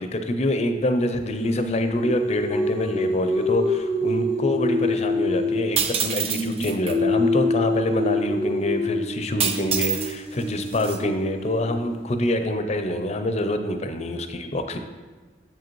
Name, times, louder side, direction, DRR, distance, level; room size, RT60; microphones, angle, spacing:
voice 1, 0.0-14.8, left 1 dB, 35° left, 7 dB, 0.5 m, -26 dB
Singing, 1.4-5.7 6.0-12.0, left 2 dB, 80° right, 1.2 m, -26 dB
sound 1, 5.8-7.0 9.4-10.1 10.4-11.0, right 7 dB, 35° right, 0.4 m, -26 dB
7.3 x 4.9 x 3.1 m, 1.4 s
head